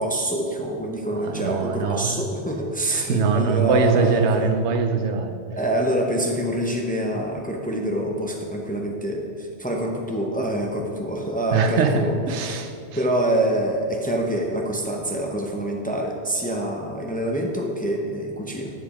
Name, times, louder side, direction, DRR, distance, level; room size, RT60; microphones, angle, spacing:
voice 1, 0.0-4.5 5.6-12.1 12.4-12.6 12.9-18.7, right 1 dB, 10° left, 1 dB, 0.6 m, -26 dB
voice 2, 1.2-2.2 2.9-5.4 11.5-12.7, right 5 dB, 90° right, 7 dB, 1.0 m, -22 dB
10.0 x 5.2 x 4.8 m, 2.3 s
omnidirectional pair, 1.1 m